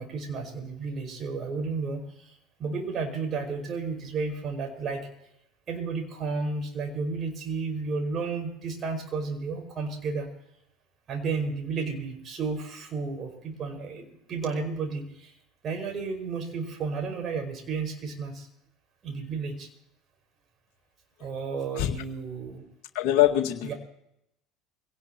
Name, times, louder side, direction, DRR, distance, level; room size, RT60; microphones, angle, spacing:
voice 1, 0.0-2.3 2.6-5.1 5.7-10.3 11.1-15.3 15.6-18.5 19.0-19.7 21.2-22.6 23.6-23.7, right 4 dB, 40° right, 3 dB, 5.2 m, -32 dB
voice 2, 22.9-23.7, left 13 dB, 60° left, 1 dB, 1.9 m, -23 dB
24.5 x 18.0 x 2.9 m, 0.80 s
hypercardioid pair, 70°, 0 cm